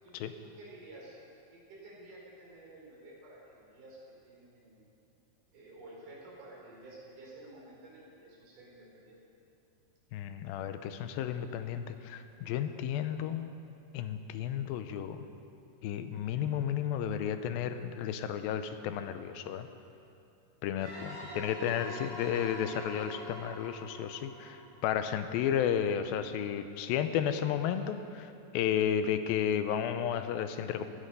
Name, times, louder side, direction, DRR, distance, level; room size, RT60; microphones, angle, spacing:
voice 1, 0.0-4.9 5.5-9.2 21.3-21.7, right 2 dB, 85° right, -4 dB, 5.6 m, -52 dB
voice 2, 10.1-13.5 13.9-15.3 15.8-19.7 20.6-30.9, left 9 dB, 85° left, 9 dB, 2.5 m, -33 dB
sound 1, 20.8-25.4, equal, 55° right, 5.6 m, -45 dB
16.5 x 13.0 x 5.5 m, 2.6 s
omnidirectional pair, 4.2 m